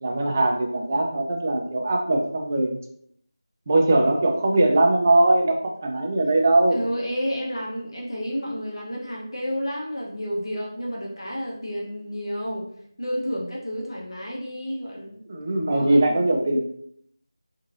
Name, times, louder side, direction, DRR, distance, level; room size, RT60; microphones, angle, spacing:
voice 1, 0.0-2.8 3.7-6.8 15.3-16.6, right 2 dB, 30° right, 1 dB, 0.4 m, -21 dB
voice 2, 6.7-12.6 13.0-15.2 15.7-16.2, equal, 75° left, -3 dB, 0.9 m, -30 dB
3.0 x 2.6 x 2.5 m, 0.68 s
figure-of-eight pair, 170°, 2 cm